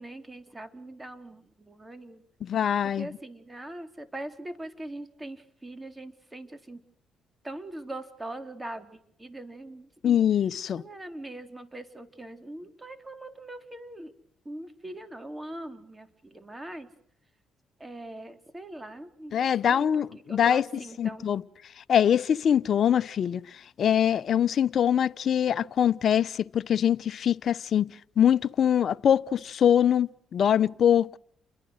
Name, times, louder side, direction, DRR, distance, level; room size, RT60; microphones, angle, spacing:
voice 1, 0.0-2.2 2.9-6.8 7.4-10.2 10.8-14.1 14.5-16.9 17.8-19.4 19.7-21.3, right 1 dB, 15° right, 3.8 m, -41 dB
voice 2, 2.4-3.1 10.0-10.8 19.3-20.6 21.0-21.4 21.9-23.4 23.8-27.9 28.2-31.2, left 9 dB, 60° left, 0.9 m, -23 dB
30.0 x 22.5 x 6.5 m
cardioid pair, 90°, 0 cm